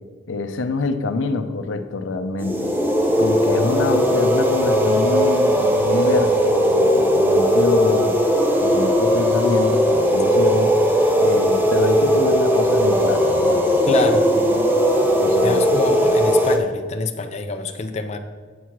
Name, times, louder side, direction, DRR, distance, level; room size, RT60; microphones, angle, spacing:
voice 1, 0.3-2.7 3.2-8.2 8.6-10.9 11.2-14.0 14.5-14.6 15.2-15.6, left 3 dB, 80° left, 9 dB, 0.6 m, -25 dB
sound 1, 2.4-16.6, equal, 10° right, 0.7 m, -18 dB
voice 2, 13.9-14.3 15.4-18.2, left 3 dB, 35° left, 5 dB, 0.5 m, -25 dB
8.2 x 4.6 x 5.9 m, 1.5 s
head